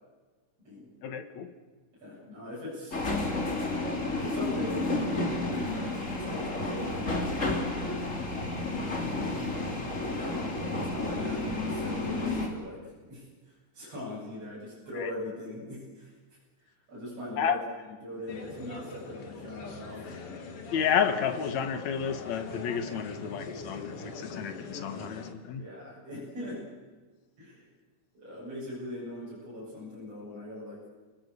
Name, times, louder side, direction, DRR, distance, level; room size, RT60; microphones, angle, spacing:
voice 1, 1.0-1.5 14.9-15.1 17.4-17.6 20.7-25.6, left 7 dB, 65° left, 9 dB, 2.5 m, -31 dB
voice 2, 2.0-3.1 4.1-7.0 10.1-10.3 10.8-12.8 13.1-13.3 13.7-16.1 16.9-17.6 18.0-20.0 25.6-26.6 27.4-27.6 28.1-30.9, left 1 dB, 50° right, -7 dB, 9.2 m, -40 dB
sound 1, 2.9-12.5, left 2 dB, 25° left, 3.0 m, -31 dB
sound 2, 18.3-25.3, left 4 dB, 50° left, 2.8 m, -42 dB
29.5 x 19.5 x 6.8 m, 1.3 s
omnidirectional pair, 3.6 m